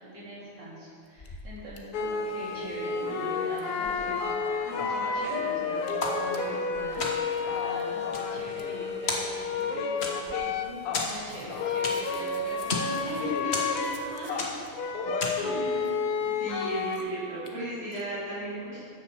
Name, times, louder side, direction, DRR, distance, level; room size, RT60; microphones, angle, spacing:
voice 1, 0.0-7.1 7.3-14.6 15.3-16.0 17.0-17.4, right 1 dB, 50° right, -8 dB, 4.2 m, -42 dB
sound 1, 1.0-1.8 2.1-2.2 2.4-3.2 3.5-4.3 4.7-5.4 5.8-6.1 6.3-7.8 8.5-8.6 9.0-9.2 9.6-9.7 10.0-10.7 11.0-14.7 15.5-15.9 16.5-16.6 16.9-17.0 17.5-17.6 17.9-18.0, left 2 dB, 50° left, 0.4 m, -51 dB
sound 2, 1.9-11.1 11.5-17.0, left 4 dB, 85° left, 1.8 m, -31 dB
voice 2, 3.0-4.1 13.0-13.3 13.7-13.8 16.2-18.8, right 1 dB, 80° right, -14 dB, 4.4 m, -37 dB
sound 3, 6.0-6.7 7.0-7.5 7.9-8.8 9.1-9.6 10.0-10.5 10.9-12.2 12.5-13.0 13.5-14.1 14.4-14.7 15.2-15.6, left 2 dB, 35° left, 1.4 m, -33 dB
13.5 x 9.5 x 5.0 m, 2.2 s
omnidirectional pair, 2.4 m